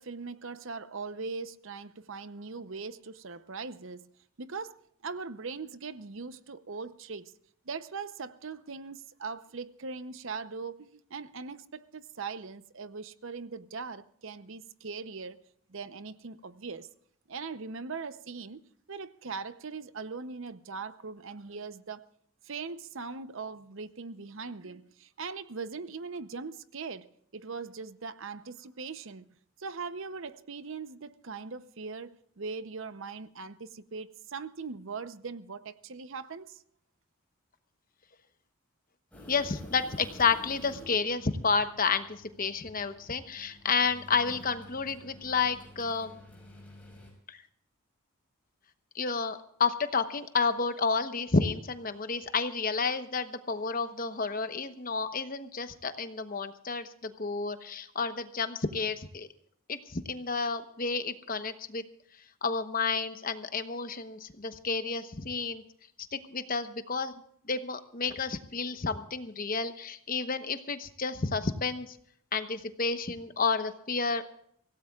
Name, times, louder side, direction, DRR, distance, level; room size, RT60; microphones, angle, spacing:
voice 1, 0.0-4.1 4.4-7.3 7.7-15.4 15.7-16.9 17.3-18.6 18.9-22.1 22.4-29.2 29.6-36.6, right 4 dB, 60° right, 0.7 m, -40 dB
sound 1, 39.1-47.1, left 1 dB, 5° left, 5.5 m, -50 dB
voice 2, 39.3-46.2 47.3-47.4 48.9-59.3 59.7-61.8 62.4-65.6 66.1-67.1 67.5-72.0 72.3-74.2, left 4 dB, 40° left, 1.0 m, -31 dB
24.5 x 17.0 x 2.4 m
head